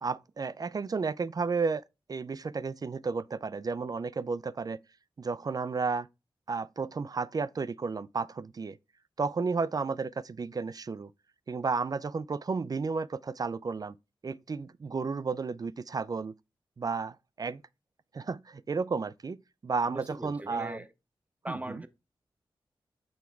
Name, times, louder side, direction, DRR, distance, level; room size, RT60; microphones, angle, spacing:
voice 1, 0.0-1.8 2.1-4.8 5.2-6.1 6.5-8.8 9.2-11.1 11.5-14.0 14.2-16.3 16.8-17.6 18.1-19.4 19.6-20.8 21.5-21.8, right 4 dB, 45° right, 0.4 m, -32 dB
voice 2, 19.9-20.9 21.4-21.9, right 1 dB, 15° right, 0.7 m, -40 dB
6.3 x 3.5 x 4.4 m
cardioid pair, 45°, 9 cm